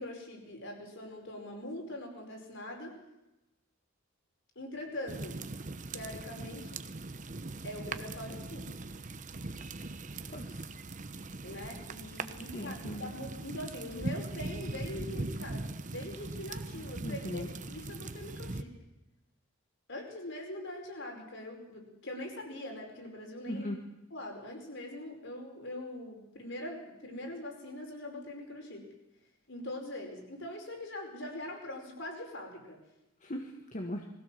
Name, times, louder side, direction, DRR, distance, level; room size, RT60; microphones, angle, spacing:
voice 1, 0.0-3.0 4.5-5.4 5.9-6.8 7.6-8.7 11.4-18.8 19.9-23.7 24.1-28.9 29.5-32.8, left 1 dB, 65° left, 2 dB, 5.0 m, -42 dB
sound 1, 5.1-18.6, right 2 dB, 40° right, 0.9 m, -40 dB
voice 2, 10.3-10.7 12.5-13.1 17.0-17.5 23.5-23.8 33.2-34.1, left 1 dB, 40° left, 2 dB, 1.7 m, -39 dB
21.5 x 16.0 x 7.6 m, 0.95 s
head